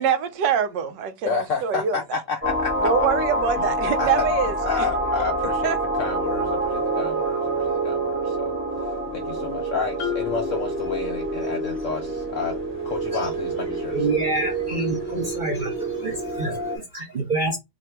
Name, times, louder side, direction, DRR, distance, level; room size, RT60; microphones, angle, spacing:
voice 1, 0.0-2.2 2.8-4.9 5.6-5.8, right 8 dB, 75° right, 1.2 m, -25 dB
voice 2, 1.2-2.9 3.6-3.7 4.0-4.3 4.6-5.7 6.0-12.5 12.8-14.0, left 5 dB, 90° left, 0.6 m, -30 dB
sound 1, 2.4-16.8, right 1 dB, 10° right, 1.1 m, -27 dB
Marimba xylophone, 10.0-11.8, left 10 dB, 50° left, 1.1 m, -33 dB
voice 3, 13.9-17.6, right 2 dB, 55° right, 0.5 m, -27 dB
2.9 x 2.6 x 4.3 m
omnidirectional pair, 2.0 m